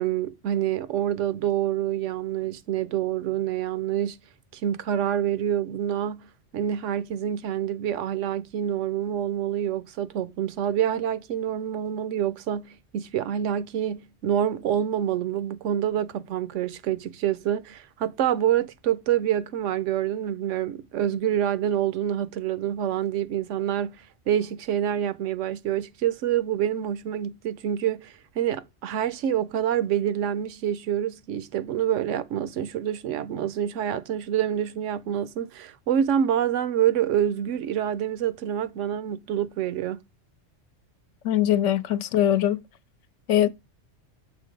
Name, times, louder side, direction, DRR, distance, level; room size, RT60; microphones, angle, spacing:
voice 1, 0.0-4.2 4.5-6.3 6.5-40.0, right 10 dB, 90° right, 1.0 m, -27 dB
voice 2, 41.2-42.6 43.3-43.5, left 11 dB, 80° left, 0.9 m, -21 dB
7.0 x 3.7 x 5.1 m
omnidirectional pair, 1.2 m